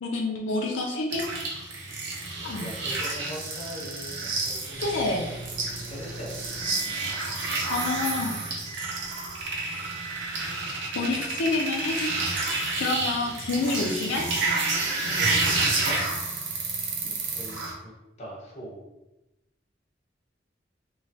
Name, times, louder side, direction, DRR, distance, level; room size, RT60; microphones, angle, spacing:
voice 1, 0.0-1.2 2.4-2.7 4.8-5.3 7.7-8.4 11.0-12.3 12.8-14.2 17.0-17.2, left 3 dB, 90° left, 0 dB, 0.4 m, -28 dB
sound 1, 1.1-17.7, right 3 dB, 70° right, 0.6 m, -30 dB
voice 2, 2.4-5.3 5.9-6.3 15.1-16.0 17.3-17.9 18.2-18.8, equal, 35° left, -4 dB, 0.8 m, -40 dB
Microwave oven, 4.7-7.3 7.6-8.2 8.6-9.2 9.7-10.3, right 4 dB, 25° right, 0.6 m, -40 dB
3.1 x 2.2 x 2.7 m, 0.95 s
head